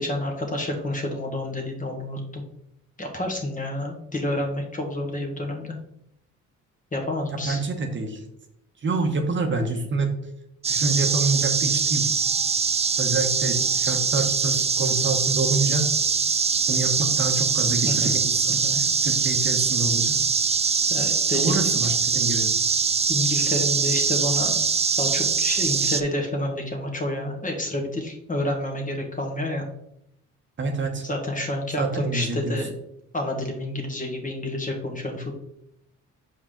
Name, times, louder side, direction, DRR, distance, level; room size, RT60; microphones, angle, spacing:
voice 1, 0.0-2.4 3.0-5.8 6.9-7.6 17.8-18.2 18.6-18.8 20.9-21.6 23.1-24.6 25.0-29.6 31.0-32.7 33.1-35.3, left 1 dB, 25° left, 2 dB, 1.7 m, -29 dB
voice 2, 7.4-8.2 8.8-10.1 10.7-12.1 13.0-15.8 16.7-20.1 21.3-22.5 30.6-31.0 31.8-32.6, right 3 dB, 40° right, 4 dB, 1.1 m, -27 dB
sound 1, 10.6-26.0, right 5 dB, 20° right, 0.4 m, -23 dB
6.4 x 4.7 x 3.8 m, 0.75 s
cardioid pair, 90°, 30 cm